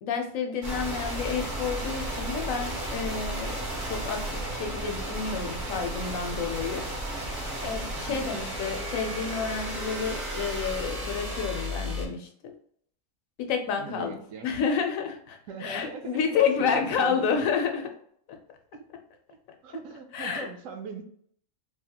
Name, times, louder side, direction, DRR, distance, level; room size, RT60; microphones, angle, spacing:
voice 1, 0.0-6.8 7.6-12.5 13.4-17.9 20.1-20.5, left 6 dB, 85° left, 4 dB, 1.0 m, -30 dB
sound 1, 0.6-12.1, right 1 dB, 40° right, 1.0 m, -33 dB
voice 2, 13.8-14.5 15.5-17.4 17.8-17.9 18.7-18.8 19.6-21.0, right 5 dB, 80° right, 6 dB, 1.0 m, -40 dB
3.4 x 2.8 x 2.3 m, 0.64 s
omnidirectional pair, 1.4 m